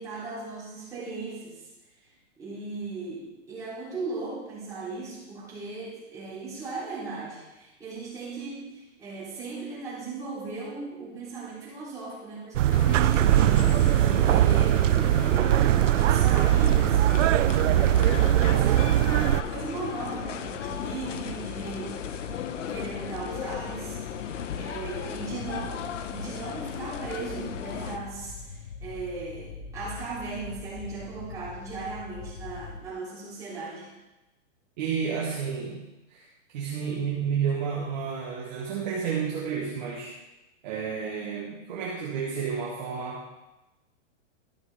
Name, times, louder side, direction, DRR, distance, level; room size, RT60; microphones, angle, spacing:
voice 1, 0.0-1.7 2.4-14.9 15.2-17.4 18.4-22.1 22.7-34.0, right 3 dB, 10° right, -10 dB, 3.5 m, -37 dB
sound 1, 12.6-19.4, right 13 dB, 75° right, 0.5 m, -21 dB
sound 2, 12.7-28.0, left 9 dB, 70° left, 0.9 m, -36 dB
sound 3, 16.4-32.8, left 4 dB, 50° left, 1.2 m, -42 dB
voice 2, 34.8-35.8 36.1-36.3 36.5-40.1 40.6-43.3, right 6 dB, 35° right, -3 dB, 1.3 m, -31 dB
12.5 x 6.1 x 4.8 m, 1.0 s
hypercardioid pair, 170°, 38 cm